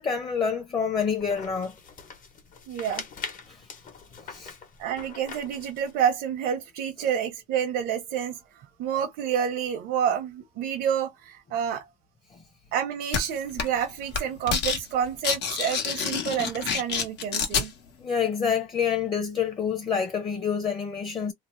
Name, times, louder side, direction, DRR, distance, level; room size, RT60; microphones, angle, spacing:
voice 1, 0.0-1.7 3.5-3.7 4.3-4.5 7.0-7.1 12.3-12.4 18.0-21.3, left 6 dB, 30° left, 0.8 m, -27 dB
sound 1, 0.9-6.0, left 5 dB, 50° left, 1.1 m, -42 dB
voice 2, 2.7-3.0 4.8-11.9 12.7-17.7, right 8 dB, 85° right, 0.7 m, -29 dB
sound 2, 13.1-13.2 13.6-13.8 14.1-14.8 15.1-17.7, left 6 dB, 85° left, 1.1 m, -27 dB
2.8 x 2.0 x 3.1 m
cardioid pair, 110°, 17 cm